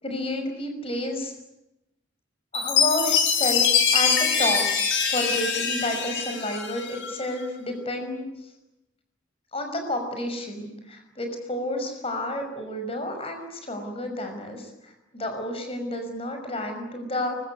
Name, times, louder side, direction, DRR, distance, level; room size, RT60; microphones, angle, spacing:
voice 1, 0.0-1.3 2.5-3.6 3.9-4.6 5.1-8.2 9.5-17.4, left 1 dB, 30° left, 5 dB, 5.9 m, -30 dB
Chime, 2.5-7.1, left 6 dB, 65° left, 5.8 m, -23 dB
24.5 x 23.5 x 9.7 m, 0.91 s
head